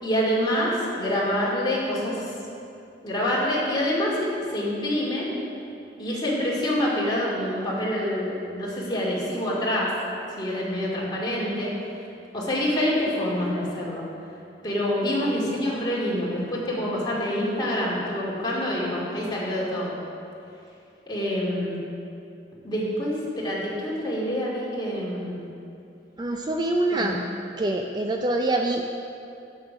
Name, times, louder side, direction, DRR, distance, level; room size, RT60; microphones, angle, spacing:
voice 1, 0.0-2.3 3.0-5.3 6.0-9.9 10.4-11.7 12.3-14.0 14.6-20.0 21.1-21.8 22.6-25.3 26.9-27.3, left 1 dB, 25° left, -5 dB, 2.3 m, -26 dB
voice 2, 26.2-27.2 27.6-28.8, right 2 dB, 25° right, 2 dB, 0.4 m, -25 dB
9.1 x 7.1 x 6.1 m, 2.6 s
head